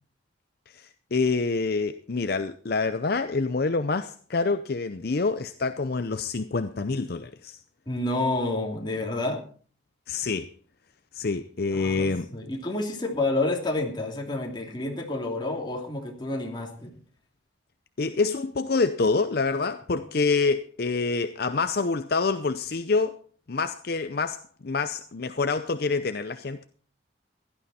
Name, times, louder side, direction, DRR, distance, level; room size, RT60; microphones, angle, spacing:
voice 1, 0.7-7.6 10.1-10.5 11.1-12.3 18.0-23.2 23.5-26.6, left 4 dB, 55° left, 0.6 m, -27 dB
voice 2, 7.9-9.4 11.7-16.9 19.9-20.0, left 2 dB, 25° left, 2.8 m, -29 dB
16.0 x 12.0 x 4.2 m
head